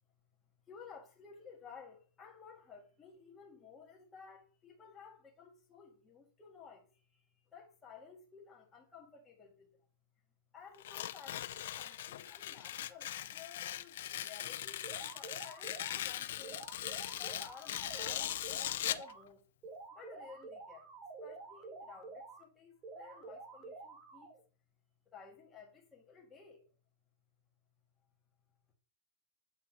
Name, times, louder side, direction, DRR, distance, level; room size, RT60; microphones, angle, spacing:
voice 1, 0.7-9.8 10.5-14.8 15.1-16.8 17.1-19.4 19.9-20.9 21.2-24.3 25.0-26.6, left 6 dB, 10° left, 1.6 m, -55 dB
Tearing, 10.8-19.1, left 12 dB, 55° left, 0.4 m, -40 dB
sound 1, 14.8-16.0 16.4-19.2 19.6-22.4 22.8-24.4, right 3 dB, 15° right, 0.7 m, -49 dB
8.2 x 7.6 x 2.7 m
supercardioid pair, 175°, 0 cm